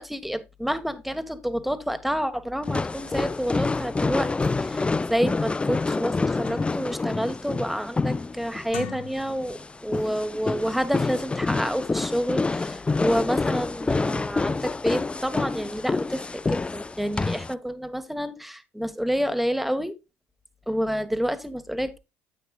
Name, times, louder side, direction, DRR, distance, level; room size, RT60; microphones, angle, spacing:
voice 1, 0.0-19.9 20.7-22.0, equal, ahead, 1.4 m, -29 dB
sound 1, 2.6-17.5, left 3 dB, 15° left, 0.4 m, -27 dB
sound 2, 4.1-4.2 4.4-4.6 5.2-5.3 5.7-7.0 7.4-7.8 8.6-9.6 9.9-10.1, left 8 dB, 80° left, 2.1 m, -42 dB
9.4 x 8.4 x 2.3 m
hypercardioid pair, 65°, 7 cm